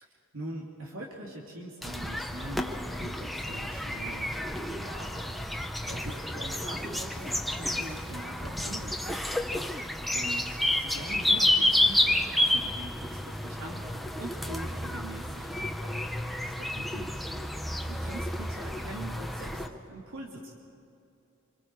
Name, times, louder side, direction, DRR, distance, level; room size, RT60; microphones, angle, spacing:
voice 1, 0.0-4.4 4.7-5.6 5.9-9.6 10.1-16.0 16.4-17.4 17.9-20.5, right 1 dB, 85° right, -2 dB, 2.9 m, -43 dB
sound 1, 1.8-19.7, left 1 dB, ahead, 0.9 m, -30 dB
26.5 x 25.5 x 4.8 m, 2.6 s
head